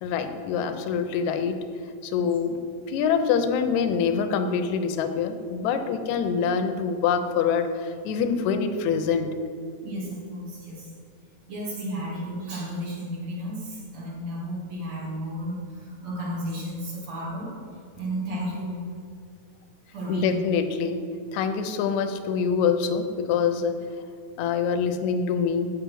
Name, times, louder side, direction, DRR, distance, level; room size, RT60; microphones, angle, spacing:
voice 1, 0.0-1.6 2.0-2.6 2.9-9.3 20.1-21.0 21.3-23.8 24.4-25.7, left 6 dB, 75° left, 7 dB, 2.0 m, -25 dB
voice 2, 9.8-10.9 11.5-17.5 18.0-18.8 19.9-20.4, equal, 60° right, -4 dB, 3.3 m, -33 dB
8.4 x 6.9 x 6.2 m, 2.3 s
omnidirectional pair, 3.5 m